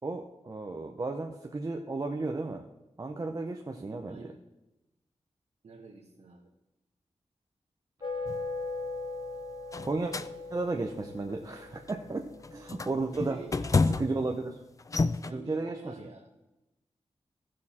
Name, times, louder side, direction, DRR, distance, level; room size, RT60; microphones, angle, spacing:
voice 1, 0.0-2.6 3.0-4.2 9.8-10.1 10.5-12.2 12.5-13.4 14.0-14.5 15.3-15.9, right 3 dB, 30° right, 2 dB, 0.7 m, -33 dB
voice 2, 4.1-4.4 5.6-6.5 13.0-14.2 15.2-16.3, right 3 dB, 65° right, -1 dB, 1.3 m, -47 dB
sound 1, 8.0-13.5, left 3 dB, 50° left, 1.2 m, -40 dB
sound 2, 8.3-8.5 9.7-10.3 10.9-11.2 11.9-12.1 12.4-14.3 14.8-15.3, left 3 dB, 30° left, 0.4 m, -29 dB
16.0 x 6.5 x 4.3 m, 0.98 s
wide cardioid pair, 140°, 11 cm